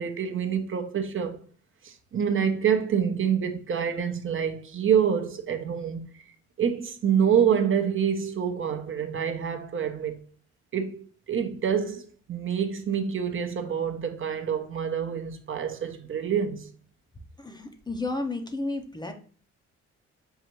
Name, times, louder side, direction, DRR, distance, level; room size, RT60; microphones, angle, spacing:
voice 1, 0.0-1.4 1.8-6.2 6.6-10.2 10.7-16.7, right 7 dB, 45° right, 0.6 m, -27 dB
voice 2, 17.4-19.1, left 2 dB, 15° left, 0.6 m, -32 dB
5.5 x 2.4 x 3.0 m
cardioid pair, 90°, 30 cm